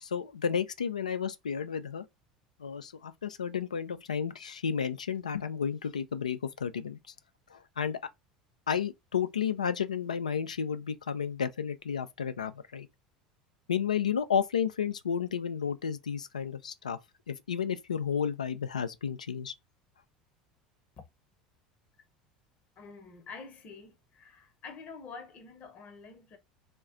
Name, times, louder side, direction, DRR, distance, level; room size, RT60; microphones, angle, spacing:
voice 1, 0.0-2.0 2.6-7.0 7.5-8.0 8.7-12.9 13.7-17.0 17.3-19.5, left 7 dB, 80° left, 0.4 m, -32 dB
voice 2, 22.8-26.4, left 5 dB, 40° left, 0.8 m, -47 dB
2.3 x 2.2 x 3.7 m
figure-of-eight pair, 75°, 4 cm